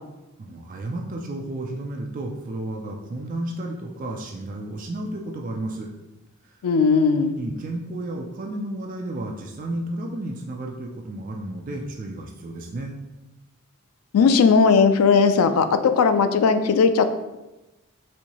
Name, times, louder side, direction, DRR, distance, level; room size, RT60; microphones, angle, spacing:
voice 1, 0.4-5.9 7.3-13.0, right 1 dB, 40° right, 1 dB, 0.3 m, -32 dB
voice 2, 6.6-7.3 14.1-17.1, left 5 dB, 90° left, 9 dB, 0.3 m, -17 dB
4.2 x 2.7 x 2.9 m, 1.0 s
head